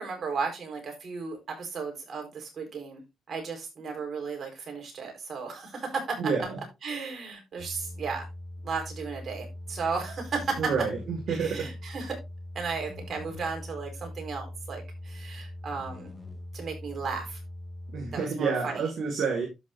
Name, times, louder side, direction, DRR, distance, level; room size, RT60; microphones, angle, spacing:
voice 1, 0.0-3.0 3.3-6.5 6.8-8.3 8.6-10.6 11.3-12.2 12.5-16.1 16.5-17.4 18.1-18.8, right 4 dB, 50° right, 4.5 m, -35 dB
voice 2, 6.2-6.6 10.6-11.7 17.9-19.5, right 5 dB, 65° right, 2.3 m, -29 dB
sound 1, 7.6-18.2, left 1 dB, ahead, 2.8 m, -41 dB
12.5 x 6.1 x 2.6 m
cardioid pair, 90°, 0 cm